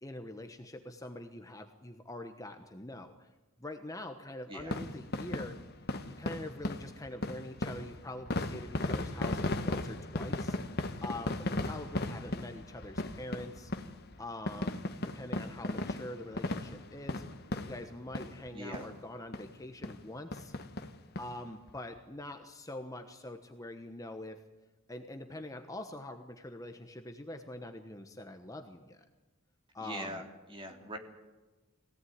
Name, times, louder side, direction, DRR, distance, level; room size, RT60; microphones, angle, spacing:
voice 1, 0.0-3.3 3.6-5.6 6.0-13.7 14.2-14.8 15.1-17.2 17.6-20.5 21.2-24.4 24.9-29.0 29.7-30.2, left 1 dB, 15° left, 6 dB, 1.1 m, -44 dB
voice 2, 4.5-4.8 18.5-18.9 29.8-31.0, right 1 dB, 25° right, 3 dB, 3.3 m, -42 dB
sound 1, 4.6-18.5 18.7-18.9 19.3-19.4 19.8-20.0 20.3-21.3 21.7-21.8 22.0-22.1, left 2 dB, 50° left, 1.4 m, -36 dB
22.5 x 17.0 x 9.5 m, 1.2 s
head